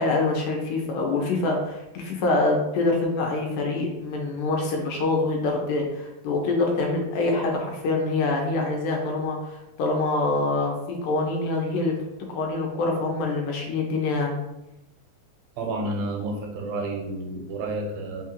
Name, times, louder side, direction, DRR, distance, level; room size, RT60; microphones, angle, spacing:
voice 1, 0.0-12.0 12.3-14.4, left 2 dB, 75° left, 1 dB, 2.1 m, -25 dB
voice 2, 15.6-18.2, right 2 dB, 90° right, 2 dB, 2.5 m, -30 dB
5.5 x 2.3 x 2.9 m, 0.92 s
omnidirectional pair, 4.0 m